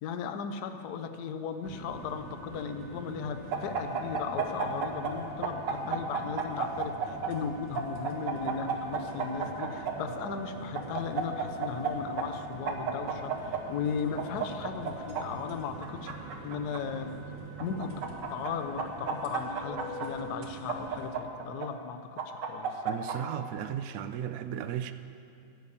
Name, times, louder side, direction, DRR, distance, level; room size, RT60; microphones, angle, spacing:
voice 1, 0.0-16.1 16.4-17.1 17.6-17.9 18.3-22.8, left 6 dB, 65° left, 1.2 m, -37 dB
sound 1, 1.6-21.1, right 3 dB, 45° right, 1.7 m, -44 dB
sound 2, 3.5-5.1 5.4-7.3 7.8-9.9 10.7-11.9 12.2-12.3 12.7-13.6 14.2-15.2 15.8-16.8 17.6-18.5 18.8-20.1 20.7-21.7 22.2-23.2, right 6 dB, 65° right, 1.7 m, -32 dB
voice 2, 22.8-24.9, right 10 dB, 85° right, 0.7 m, -35 dB
11.0 x 8.4 x 8.5 m
omnidirectional pair, 2.1 m